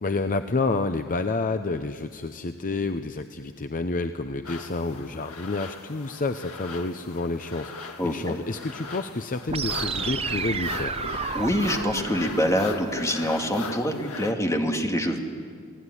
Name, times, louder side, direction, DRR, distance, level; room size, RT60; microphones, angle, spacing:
voice 1, 0.0-11.0, left 3 dB, 40° left, 9 dB, 0.7 m, -29 dB
sound 1, 4.4-14.3, left 4 dB, 70° left, 1.7 m, -39 dB
voice 2, 8.0-8.4 11.3-15.2, equal, 15° left, 3 dB, 2.2 m, -25 dB
sound 2, 9.5-13.5, right 5 dB, 25° right, 0.7 m, -32 dB
28.5 x 18.0 x 9.9 m, 2.1 s
head